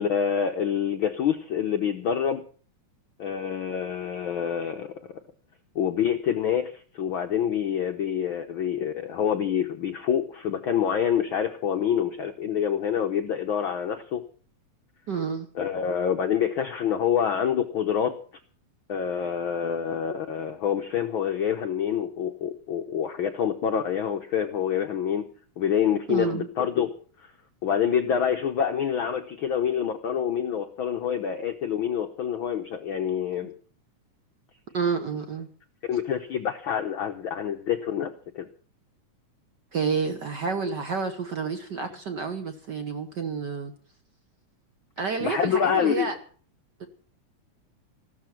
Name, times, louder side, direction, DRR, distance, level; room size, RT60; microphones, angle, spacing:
voice 1, 0.0-2.4 3.2-4.9 5.7-14.2 15.5-18.2 18.9-25.3 25.6-26.9 27.2-27.3 27.6-33.5 35.9-38.1 38.3-38.5 45.2-46.1, left 8 dB, 85° left, 6 dB, 1.1 m, -26 dB
voice 2, 15.1-15.5 26.1-26.5 33.4-33.5 34.7-35.5 39.7-43.7 45.0-46.1 46.8-46.9, right 5 dB, 70° right, 8 dB, 1.0 m, -29 dB
15.0 x 13.0 x 5.9 m, 0.43 s
omnidirectional pair, 3.5 m